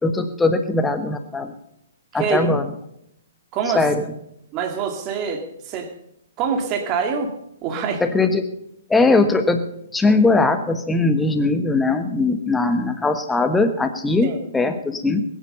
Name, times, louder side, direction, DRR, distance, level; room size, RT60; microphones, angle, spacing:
voice 1, 0.0-1.5 2.1-2.7 3.7-4.0 8.0-8.4 8.9-9.6 9.9-15.2, left 3 dB, 5° left, 8 dB, 1.4 m, -20 dB
voice 2, 2.1-2.6 3.5-3.9 4.5-5.9 6.4-7.3 7.6-8.0 14.2-14.4, right 6 dB, 30° right, 5 dB, 2.4 m, -25 dB
21.0 x 10.5 x 5.5 m, 0.78 s
figure-of-eight pair, 120°, 0 cm